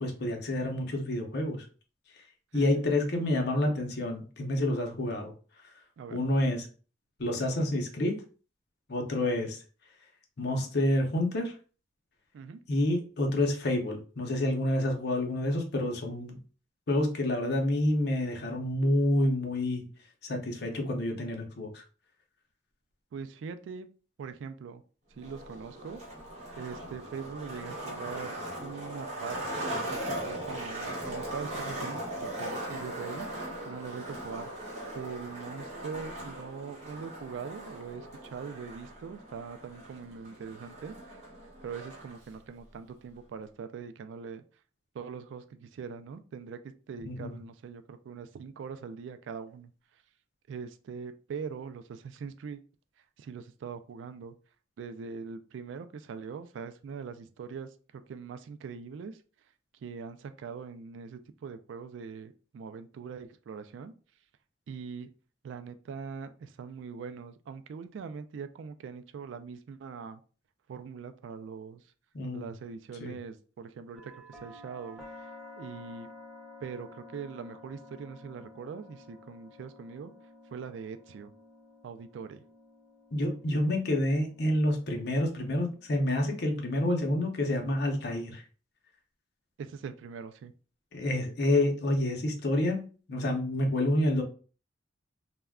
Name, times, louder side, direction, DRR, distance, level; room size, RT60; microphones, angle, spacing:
voice 1, 0.0-1.7 2.5-5.3 5.6-5.7 6.1-6.7 7.2-8.2 8.9-9.6 10.4-11.5 12.7-16.4 16.9-19.8 20.2-21.8 47.1-47.4 72.1-72.5 73.0-73.1 83.1-88.4 90.9-92.8 93.1-94.2, left 1 dB, 55° left, 2 dB, 0.6 m, -28 dB
voice 2, 2.5-2.9 6.0-6.2 12.3-12.6 23.1-23.9 24.2-24.8 25.1-26.0 26.6-34.7 34.9-41.2 41.6-44.4 44.9-49.7 50.5-52.6 53.2-54.3 54.8-59.2 59.8-63.9 64.7-65.1 65.4-70.2 70.7-71.8 72.3-75.0 75.6-76.1 76.6-80.1 80.5-81.3 81.8-82.4 89.6-90.5, right 6 dB, 75° right, 10 dB, 0.3 m, -42 dB
Skateboard, 25.2-42.2, right 1 dB, 35° right, 1.0 m, -39 dB
sound 1, 74.0-87.8, left 2 dB, ahead, 0.5 m, -52 dB
2.3 x 2.1 x 3.5 m, 0.38 s
head